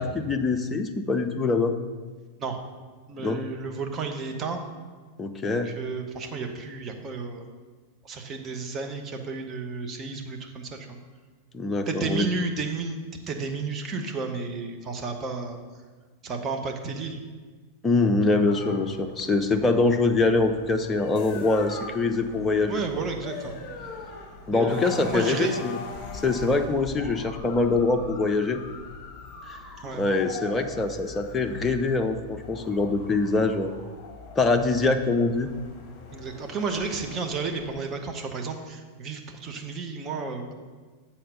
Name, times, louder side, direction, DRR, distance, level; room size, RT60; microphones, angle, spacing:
voice 1, 0.0-1.7 3.2-3.4 5.2-5.7 11.5-12.3 17.8-22.7 24.5-25.8 26.2-28.6 29.5-29.6 30.0-33.7 34.4-35.5, left 3 dB, 15° left, 6 dB, 0.6 m, -24 dB
voice 2, 3.1-4.6 5.5-7.4 8.0-11.0 11.9-15.6 16.2-17.2 22.7-23.6 24.5-25.5 29.8-30.0 36.1-40.5, right 4 dB, 25° right, 3 dB, 1.0 m, -32 dB
sound 1, 18.5-37.8, left 4 dB, 35° left, 1.2 m, -41 dB
7.6 x 4.3 x 6.7 m, 1.4 s
figure-of-eight pair, 90°, 0 cm